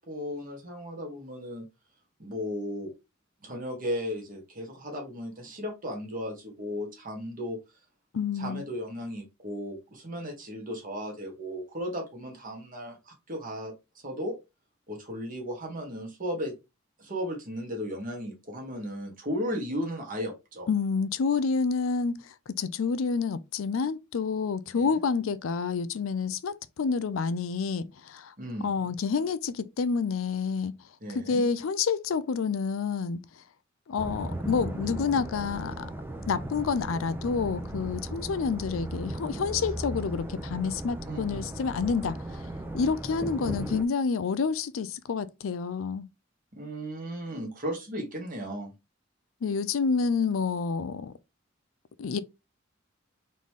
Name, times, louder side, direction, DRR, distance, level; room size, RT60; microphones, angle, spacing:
voice 1, 0.1-1.7 2.2-2.9 3.4-7.6 8.3-13.7 14.0-14.3 14.9-16.5 17.0-20.7 24.7-24.9 28.4-28.9 31.0-31.4 41.1-41.4 46.5-48.7, equal, 45° right, 1.6 m, -35 dB
voice 2, 8.1-8.7 20.7-28.3 28.6-30.7 31.1-33.2 33.9-35.9 36.3-42.4 42.7-46.1 49.4-51.1 52.0-52.2, left 5 dB, 85° left, 0.4 m, -28 dB
sound 1, 34.0-43.8, right 1 dB, 10° right, 0.5 m, -37 dB
4.0 x 3.2 x 3.6 m
head